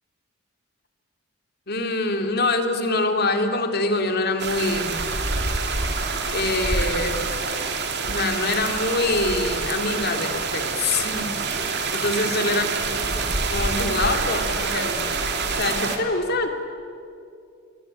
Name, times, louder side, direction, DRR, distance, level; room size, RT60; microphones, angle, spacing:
voice 1, 1.7-5.0 6.3-7.3 8.1-11.3 11.9-15.1 15.5-16.5, left 2 dB, 50° left, 5 dB, 2.6 m, -25 dB
sound 1, 4.4-16.0, right 4 dB, 55° right, 2.6 m, -26 dB
25.0 x 23.0 x 9.0 m, 2.5 s
head